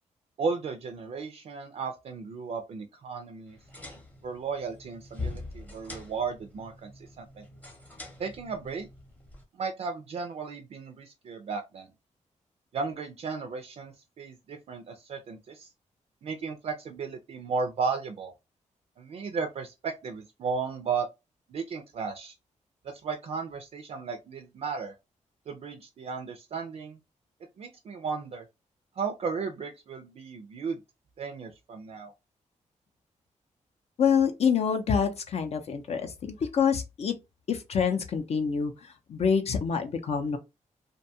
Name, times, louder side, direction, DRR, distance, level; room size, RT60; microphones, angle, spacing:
voice 1, 0.4-3.6 4.2-7.4 8.2-8.9 9.6-11.9 12.7-15.7 16.2-18.3 19.0-21.1 21.5-22.3 22.8-24.9 25.5-27.0 27.6-28.4 29.0-30.8 31.2-32.1, right 5 dB, 50° right, 0.4 m, -35 dB
sound 1, 3.5-9.4, left 3 dB, 10° left, 0.7 m, -43 dB
voice 2, 34.0-37.1 37.5-40.4, left 6 dB, 55° left, 0.5 m, -26 dB
2.6 x 2.2 x 2.6 m
wide cardioid pair, 155°, 13 cm